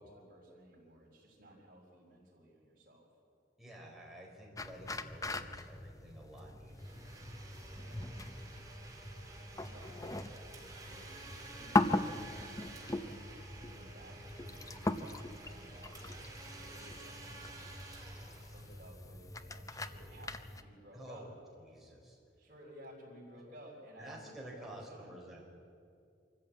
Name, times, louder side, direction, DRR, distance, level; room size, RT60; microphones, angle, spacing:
voice 1, 0.0-3.1 7.6-8.2 9.7-12.8 13.5-17.7 18.5-21.3 22.4-25.2, equal, 50° right, -7 dB, 4.8 m, -56 dB
voice 2, 3.6-7.1 20.9-21.3 21.6-22.2 24.0-25.4, right 1 dB, ahead, -2 dB, 4.6 m, -51 dB
sound 1, 4.6-20.6, left 2 dB, 20° left, 0.7 m, -40 dB
Domestic sounds home sounds, 6.7-19.3, right 2 dB, 20° right, 3.2 m, -52 dB
25.5 x 14.5 x 8.6 m, 2.4 s
head